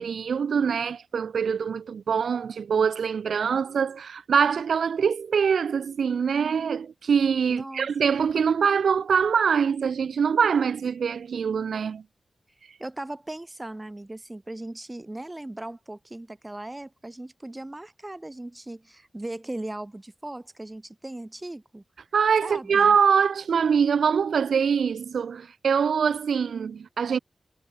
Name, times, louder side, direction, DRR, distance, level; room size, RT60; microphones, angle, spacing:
voice 1, 0.0-12.0 22.1-27.2, right 6 dB, 85° right, 0.3 m, -24 dB
voice 2, 7.5-7.9 12.8-21.8 22.4-23.0, right 1 dB, 20° right, 3.3 m, -38 dB
wide cardioid pair, 75°, 0 cm